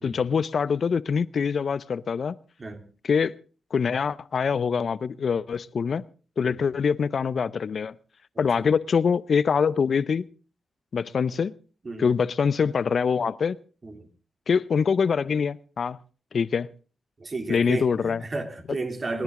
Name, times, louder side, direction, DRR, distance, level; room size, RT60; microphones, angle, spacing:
voice 1, 0.0-2.3 3.0-3.3 3.7-6.0 6.4-7.9 8.4-10.2 10.9-11.5 12.0-13.6 14.5-16.0 16.3-16.7 17.5-18.2, left 6 dB, 65° left, 0.7 m, -24 dB
voice 2, 8.3-8.7 11.8-12.1 13.8-14.1 17.2-19.2, right 3 dB, 45° right, 3.1 m, -33 dB
29.0 x 10.5 x 3.8 m
supercardioid pair, 45°, 0 cm